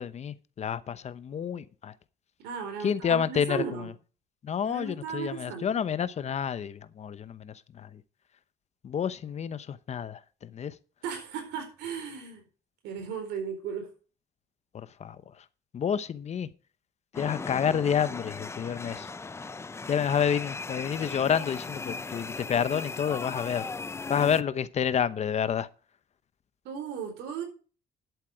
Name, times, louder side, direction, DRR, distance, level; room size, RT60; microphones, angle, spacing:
voice 1, 0.0-1.9 2.8-3.6 4.4-8.0 8.8-10.7 14.7-15.2 15.7-16.5 17.2-19.1 19.9-23.7 24.1-25.7, left 8 dB, 40° left, 0.9 m, -29 dB
voice 2, 2.4-3.9 4.6-5.7 11.0-12.4 12.8-13.9 26.6-27.4, right 6 dB, 85° right, 4.1 m, -36 dB
sound 1, 17.1-24.4, left 4 dB, 15° left, 0.4 m, -38 dB
11.0 x 8.3 x 4.8 m
cardioid pair, 110°, 17 cm